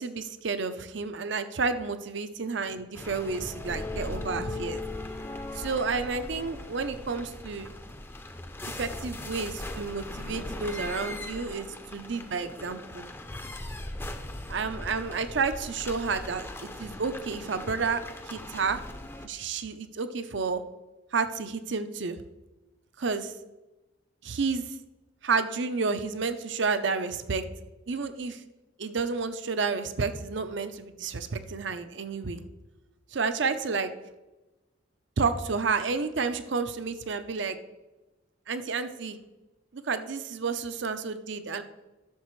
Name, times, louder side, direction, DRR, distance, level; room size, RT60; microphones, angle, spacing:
voice 1, 0.0-4.8 5.5-7.7 8.7-11.7 11.9-13.1 14.5-18.0 18.3-18.8 19.2-20.6 21.1-22.2 23.0-23.3 24.2-24.8 25.2-27.4 27.9-28.4 28.8-32.4 33.1-33.9 35.2-37.6 38.5-39.2 39.7-41.6, right 4 dB, 65° right, 10 dB, 0.6 m, -30 dB
sound 1, 2.9-19.3, left 2 dB, 10° left, 0.5 m, -39 dB
14.0 x 6.7 x 3.1 m, 1.1 s
head